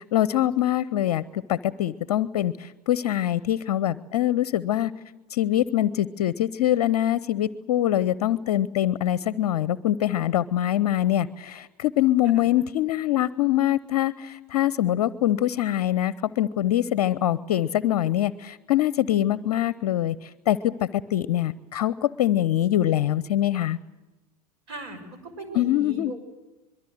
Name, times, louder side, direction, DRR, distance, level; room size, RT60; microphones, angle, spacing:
voice 1, 0.0-4.9 5.3-23.8 25.5-26.1, left 12 dB, 50° left, 18 dB, 0.8 m, -24 dB
voice 2, 24.7-26.2, right 2 dB, 50° right, 7 dB, 6.0 m, -38 dB
24.5 x 22.5 x 7.8 m, 1.1 s
figure-of-eight pair, 85°, 20 cm